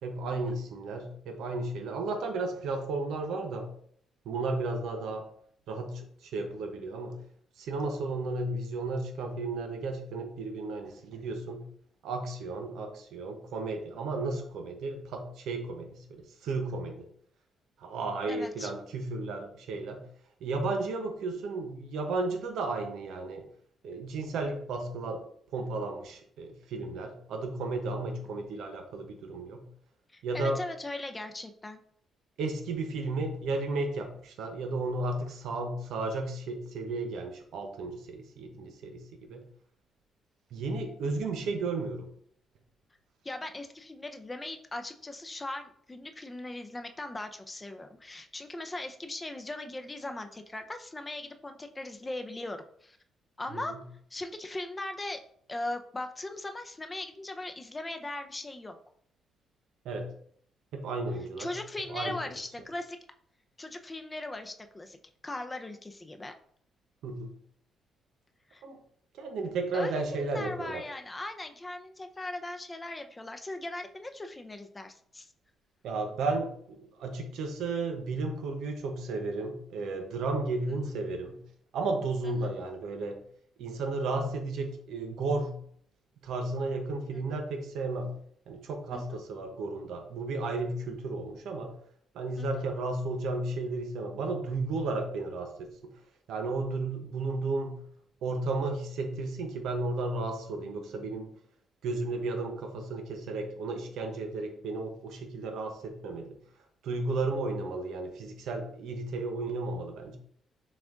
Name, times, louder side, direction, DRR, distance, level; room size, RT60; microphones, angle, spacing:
voice 1, 0.0-3.8 4.2-5.3 5.7-7.2 7.6-11.7 12.0-17.1 17.8-20.1 20.4-23.5 23.8-25.2 25.5-29.7 30.2-30.6 32.4-39.5 40.5-42.1 53.5-53.8 59.8-60.1 60.7-61.5 61.9-62.2 67.0-67.4 68.6-68.8 69.2-70.8 75.8-81.4 81.7-83.2 83.6-85.6 86.2-91.8 92.1-95.9 96.3-97.8 98.2-101.3 101.8-106.4 106.8-110.2, right 3 dB, 80° right, 5 dB, 0.8 m, -33 dB
voice 2, 18.3-18.7 30.1-31.8 43.2-53.0 53.4-53.7 54.1-55.2 55.5-58.8 61.4-63.0 63.6-65.0 65.2-66.3 68.5-68.6 69.7-75.3 80.7-80.8 82.3-82.5 87.1-87.4 88.9-89.0 92.4-92.5, left 2 dB, 20° left, 7 dB, 0.5 m, -39 dB
6.1 x 2.4 x 3.6 m, 0.63 s
cardioid pair, 90°, 0 cm